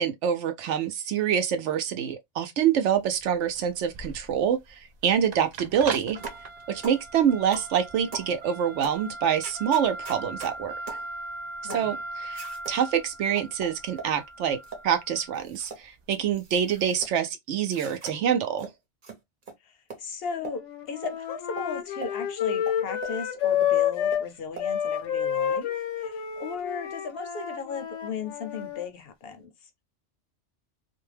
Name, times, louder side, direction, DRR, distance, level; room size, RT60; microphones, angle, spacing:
voice 1, 0.0-4.6 5.0-6.2 6.7-10.7 11.7-12.0 12.3-18.7, right 8 dB, 80° right, 0.9 m, -26 dB
sound 1, 2.9-17.0, right 2 dB, 65° right, 0.4 m, -40 dB
sound 2, 6.2-6.5 6.8-7.0 7.5-7.7 8.1-8.3 8.8-9.0 9.4-10.5 10.9-11.1 11.7-11.9 12.3-12.8 13.4-14.1 14.6-14.9 15.3-15.8 16.1-17.1 17.6-18.1 18.6-18.7 19.0-19.2 19.4-19.5 19.9-20.0 20.4-20.6 21.0-21.1 21.6-21.7 22.0-22.1 22.7-23.2 23.6-23.7 24.1-24.2 24.6-24.7, right 4 dB, 45° right, 0.9 m, -40 dB
voice 2, 11.6-12.0 19.6-29.7, left 5 dB, 60° left, 0.8 m, -36 dB
Wind instrument woodwind instrument, 20.4-24.3 24.6-28.9, left 9 dB, 85° left, 1.1 m, -29 dB
2.5 x 2.1 x 3.2 m
omnidirectional pair, 1.2 m